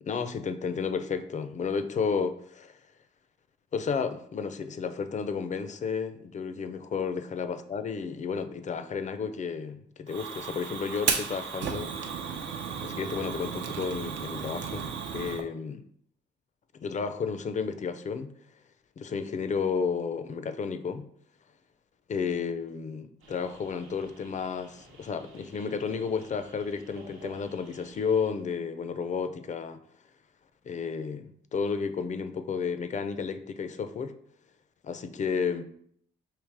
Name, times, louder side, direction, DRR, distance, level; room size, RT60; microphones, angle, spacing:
voice 1, 0.0-2.8 3.7-11.9 12.8-15.8 16.7-18.3 19.0-21.1 22.1-29.8 30.6-34.1 34.8-35.6, left 5 dB, 40° left, 9 dB, 0.4 m, -32 dB
Fire, 10.1-15.4, right 6 dB, 65° right, 0.6 m, -34 dB
sound 1, 23.2-28.3, right 2 dB, 90° right, 1.0 m, -52 dB
4.9 x 2.9 x 3.3 m, 0.65 s
cardioid pair, 90°, 20 cm